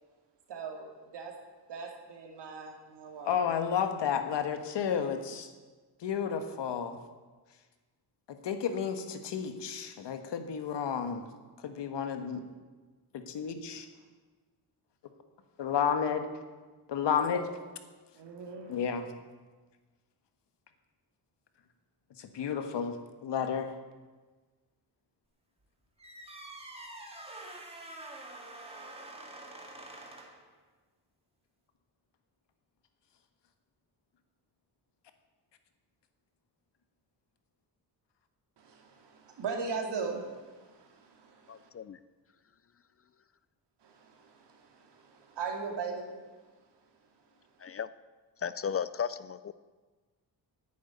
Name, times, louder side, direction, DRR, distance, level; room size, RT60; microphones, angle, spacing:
voice 1, 0.5-1.4 1.7-3.5 17.1-17.2 18.1-18.8 38.6-41.7 43.8-46.2, right 5 dB, 80° right, 2 dB, 2.6 m, -39 dB
voice 2, 3.2-5.5 6.0-7.0 8.3-11.3 11.6-12.4 13.1-13.9 15.6-16.3 16.9-17.4 18.7-19.1 22.2-23.8, left 7 dB, 85° left, 8 dB, 1.5 m, -32 dB
sound 1, 26.0-30.5, right 2 dB, 15° right, 1.9 m, -46 dB
voice 3, 41.5-42.0 47.6-47.9 48.4-49.5, left 7 dB, 35° left, 15 dB, 0.4 m, -35 dB
11.0 x 9.4 x 9.4 m, 1.3 s
wide cardioid pair, 165°, 41 cm